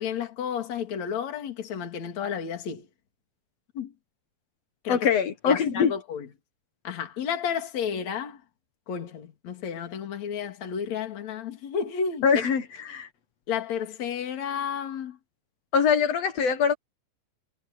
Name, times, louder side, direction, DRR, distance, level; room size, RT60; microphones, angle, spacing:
voice 1, 0.0-2.9 3.7-3.9 4.8-5.1 5.5-6.3 6.8-8.4 8.9-12.3 13.5-15.2, left 7 dB, 40° left, 3.8 m, -32 dB
voice 2, 4.9-5.9 12.2-13.1 15.7-16.7, left 6 dB, 85° left, 1.4 m, -23 dB
omnidirectional pair, 5.2 m